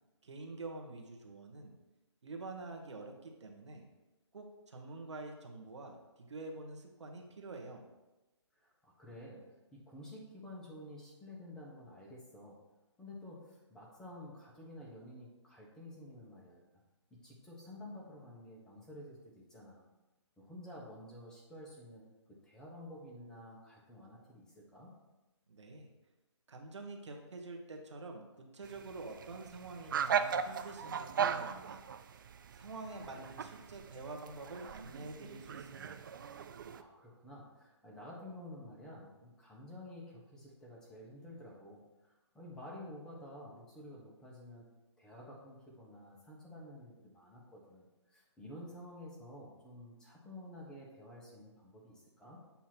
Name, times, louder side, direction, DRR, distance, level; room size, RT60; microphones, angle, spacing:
voice 1, 0.2-1.7 2.2-3.8 4.3-7.8 25.5-25.9 26.5-31.8 32.5-36.0, right 3 dB, 75° right, 2 dB, 1.3 m, -47 dB
voice 2, 8.6-9.4 9.7-12.6 13.0-16.7 17.1-19.9 20.4-24.9 36.7-44.6 45.0-52.4, left 1 dB, 5° left, -4 dB, 1.0 m, -51 dB
sound 1, 28.6-36.8, right 7 dB, 45° right, 0.4 m, -38 dB
7.3 x 2.9 x 5.9 m, 1.1 s
hypercardioid pair, 155°, 15 cm